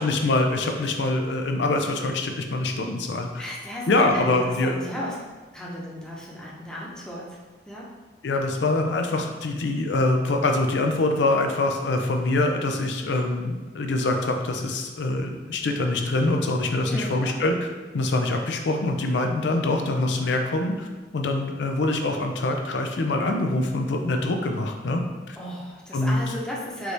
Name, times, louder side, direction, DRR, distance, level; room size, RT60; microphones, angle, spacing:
voice 1, 0.0-3.4 3.9-4.8 8.2-17.7 17.9-20.9 21.1-25.4 25.9-26.2, left 2 dB, 80° left, 4 dB, 0.5 m, -24 dB
voice 2, 3.4-5.2 5.5-7.3 7.7-7.9 16.9-17.4 25.4-26.9, equal, 5° left, -6 dB, 0.8 m, -35 dB
4.6 x 2.6 x 3.3 m, 1.3 s
head